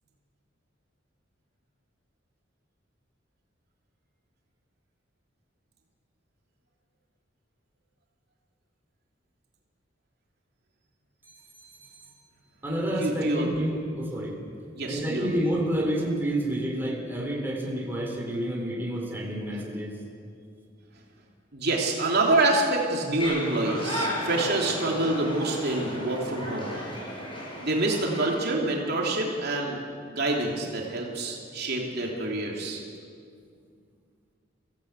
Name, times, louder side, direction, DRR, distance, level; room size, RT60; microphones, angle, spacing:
voice 1, 11.2-12.0 12.6-14.4 14.9-20.0, right 1 dB, 10° right, -1 dB, 4.1 m, -29 dB
voice 2, 13.0-13.5 14.7-15.3 21.5-26.7 27.6-29.8 30.1-32.8, right 2 dB, 55° right, -1 dB, 3.1 m, -26 dB
sound 1, 23.2-28.4, equal, 25° left, 6.4 m, -34 dB
24.5 x 16.5 x 8.3 m, 2.2 s
head